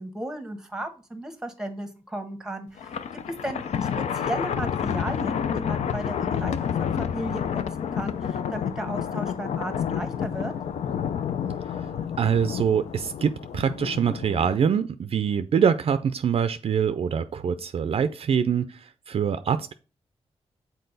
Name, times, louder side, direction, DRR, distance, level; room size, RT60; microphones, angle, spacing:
voice 1, 0.0-3.0 3.3-7.6 7.9-10.5, right 1 dB, 5° right, 1.2 m, -35 dB
Thunder, 2.8-14.5, left 8 dB, 90° left, 0.4 m, -29 dB
voice 2, 12.2-19.7, right 7 dB, 60° right, 0.4 m, -24 dB
6.6 x 4.2 x 3.9 m
wide cardioid pair, 100°, 11 cm